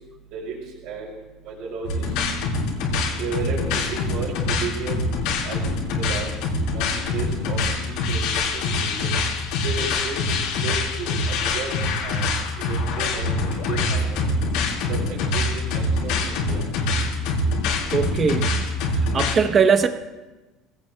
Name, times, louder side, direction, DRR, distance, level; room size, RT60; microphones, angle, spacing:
voice 1, 1.4-2.0 3.2-5.1 5.4-5.6 5.9-6.3 6.7-9.1 9.6-10.2 10.6-11.7 12.0-12.2 12.7-14.3 14.9-16.6, right 5 dB, 55° right, -7 dB, 5.3 m, -33 dB
sound 1, 1.8-19.3, left 2 dB, 75° left, 4.3 m, -24 dB
voice 2, 17.9-18.5 19.1-19.9, right 6 dB, 25° right, 8 dB, 0.8 m, -19 dB
25.5 x 17.5 x 2.2 m, 1.1 s
cardioid pair, 165°, 0 cm